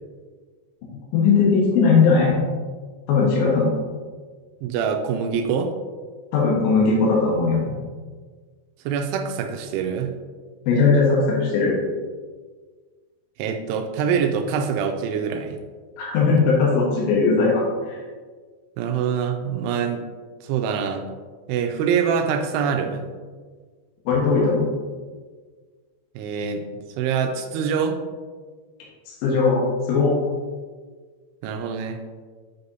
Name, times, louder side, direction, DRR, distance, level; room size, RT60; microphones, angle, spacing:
voice 1, 1.1-2.4 3.1-3.7 6.3-7.7 10.7-11.7 16.0-17.6 24.1-24.7 29.1-30.1, left 4 dB, 65° left, -4 dB, 2.4 m, -19 dB
voice 2, 4.6-5.7 8.9-10.1 13.4-15.6 18.8-20.1 20.4-21.0 21.5-23.0 26.2-28.0 31.4-32.0, right 7 dB, 85° right, 5 dB, 2.6 m, -25 dB
7.8 x 6.8 x 2.7 m, 1.5 s
omnidirectional pair, 4.8 m